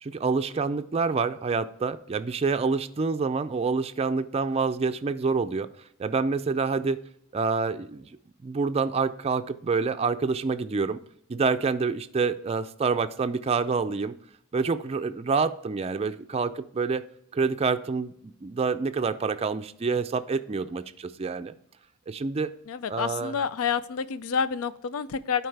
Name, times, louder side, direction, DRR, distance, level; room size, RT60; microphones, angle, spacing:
voice 1, 0.0-5.7 6.0-7.0 7.3-8.2 8.4-11.0 11.3-14.1 14.5-17.1 17.3-21.5 22.1-22.5 22.9-23.4, right 4 dB, 30° right, 8 dB, 0.4 m, -27 dB
voice 2, 22.7-25.5, left 6 dB, 75° left, 15 dB, 0.5 m, -29 dB
11.5 x 4.7 x 3.3 m, 0.71 s
head